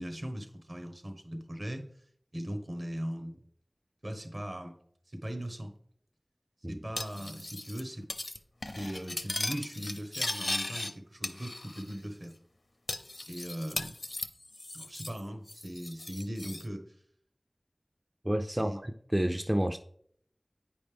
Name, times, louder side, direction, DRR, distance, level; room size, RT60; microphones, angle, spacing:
voice 1, 0.0-1.9 2.3-3.4 4.0-4.7 5.1-5.7 6.7-8.1 8.6-12.3 13.3-14.0 14.7-17.0 18.5-18.8, equal, 60° right, 1.2 m, -39 dB
Cutlery silverware, 7.0-7.8 8.1-8.4 8.6-10.9 11.2-11.9 12.2-12.3 12.9-15.2 15.5-16.6, left 2 dB, 65° left, 0.5 m, -37 dB
voice 2, 18.2-19.8, right 1 dB, 20° right, 0.4 m, -30 dB
8.8 x 5.3 x 3.4 m
wide cardioid pair, 50°, 0 cm